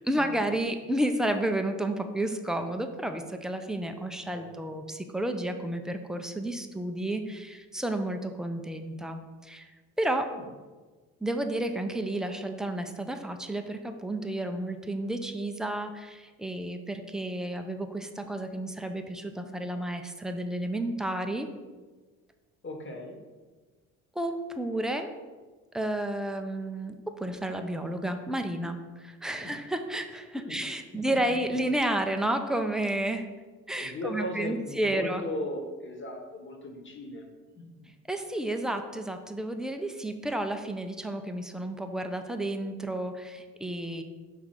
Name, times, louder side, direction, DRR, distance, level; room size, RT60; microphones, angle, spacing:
voice 1, 0.0-9.7 10.0-10.3 11.2-21.5 24.2-25.1 25.7-33.3 33.7-35.2 38.1-44.0, right 1 dB, ahead, 6 dB, 0.5 m, -31 dB
voice 2, 22.6-23.2 29.4-29.6 30.4-30.6 30.9-31.0 33.7-37.3 37.6-37.9, left 1 dB, 25° left, 3 dB, 1.3 m, -37 dB
5.8 x 3.3 x 5.6 m, 1.3 s
hypercardioid pair, 50°, 43 cm